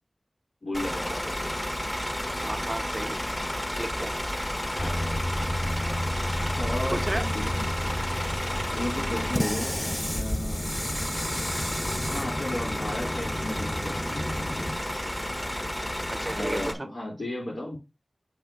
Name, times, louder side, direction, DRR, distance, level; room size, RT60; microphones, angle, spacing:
voice 1, 0.6-1.5 4.8-5.2 6.5-7.7 8.7-10.7 12.0-14.5 16.3-17.8, left 1 dB, 90° left, 3.5 m, -35 dB
Bus / Idling, 0.7-16.7, left 1 dB, 20° left, 1.1 m, -31 dB
voice 2, 2.4-3.2 3.8-4.2 6.9-7.3 16.1-16.9, right 2 dB, 35° right, 0.5 m, -33 dB
sound 1, 4.8-14.8, left 1 dB, 45° left, 2.4 m, -33 dB
6.6 x 4.2 x 5.7 m
wide cardioid pair, 65°, 0 cm